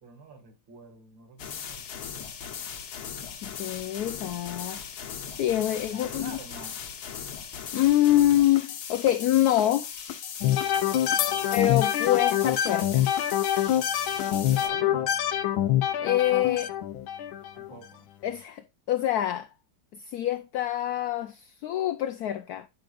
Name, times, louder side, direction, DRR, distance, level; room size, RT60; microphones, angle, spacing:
voice 1, 0.0-2.3 5.3-6.8 11.1-11.5 14.1-15.1 17.5-18.1, right 4 dB, 70° right, 2.9 m, -47 dB
sound 1, 1.4-14.7, left 8 dB, 60° left, 1.4 m, -38 dB
voice 2, 3.4-4.8 5.4-6.4 7.7-9.9 11.5-13.1 16.0-16.7 18.2-18.6 18.9-19.5 20.1-22.7, left 13 dB, 75° left, 0.9 m, -25 dB
sound 2, 10.4-17.7, left 11 dB, 90° left, 1.5 m, -26 dB
11.5 x 5.0 x 2.4 m
omnidirectional pair, 2.1 m